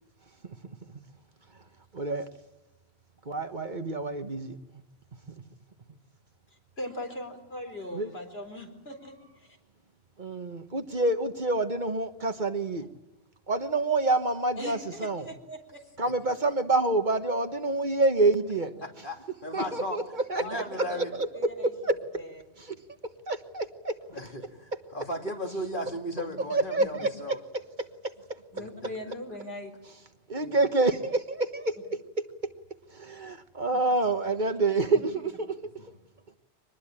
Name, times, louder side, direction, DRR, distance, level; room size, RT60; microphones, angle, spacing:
voice 1, 1.9-2.3 3.2-4.6 7.9-8.1 10.2-12.9 13.5-15.3 16.0-18.7 19.5-20.6 21.0-22.0 22.6-22.8 23.3-24.0 24.7-24.8 26.5-27.4 27.8-28.4 30.3-32.2 32.9-35.6, right 2 dB, 45° right, 7 dB, 1.5 m, -27 dB
voice 2, 6.8-9.6 14.6-15.8 18.6-18.9 19.6-19.7 19.9-20.1 20.4-21.7 22.1-22.4 25.9-26.5 26.8-26.9 28.5-29.7 30.4-30.6 33.7-33.8 34.9-35.0, left 1 dB, 70° left, 4 dB, 4.5 m, -41 dB
voice 3, 18.8-20.0 20.3-21.1 24.1-27.4 28.6-28.7 29.0-29.1, equal, 50° left, 3 dB, 2.9 m, -36 dB
25.0 x 20.5 x 8.9 m, 1.0 s
omnidirectional pair, 1.1 m